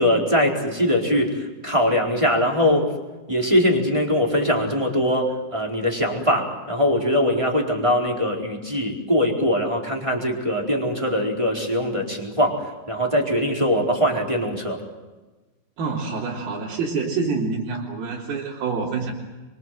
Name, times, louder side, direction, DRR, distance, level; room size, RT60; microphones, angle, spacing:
voice 1, 0.0-2.9 3.3-14.8, equal, 5° right, 0 dB, 3.9 m, -22 dB
voice 2, 15.8-19.1, right 4 dB, 60° right, -4 dB, 5.1 m, -27 dB
30.0 x 25.0 x 7.8 m, 1.2 s
omnidirectional pair, 5.0 m